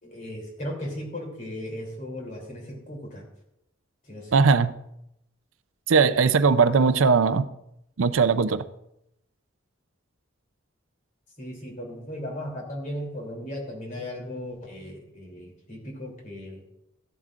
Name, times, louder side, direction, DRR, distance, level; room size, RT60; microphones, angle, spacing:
voice 1, 0.0-3.2 4.1-4.3 11.4-16.6, left 1 dB, 40° left, 0 dB, 3.2 m, -36 dB
voice 2, 4.3-4.7 5.9-7.5 8.0-8.6, right 5 dB, 80° right, 13 dB, 0.5 m, -19 dB
14.5 x 11.0 x 2.5 m, 0.81 s
head